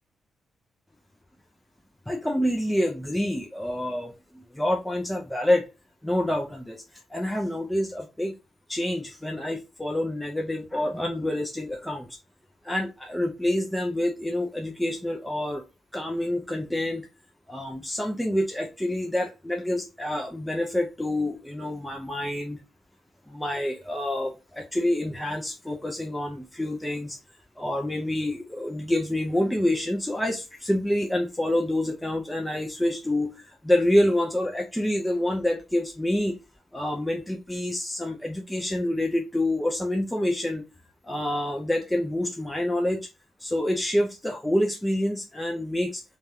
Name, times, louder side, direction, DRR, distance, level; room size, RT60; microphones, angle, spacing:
voice 1, 2.1-5.6 6.0-6.8 7.1-8.3 8.7-12.2 12.6-15.6 15.9-17.1 17.5-22.6 23.3-27.2 27.6-36.3 36.7-40.6 41.0-43.1 43.4-46.0, left 1 dB, 5° left, 1 dB, 0.4 m, -27 dB
2.6 x 2.3 x 3.2 m, 0.28 s
cardioid pair, 135°, 0 cm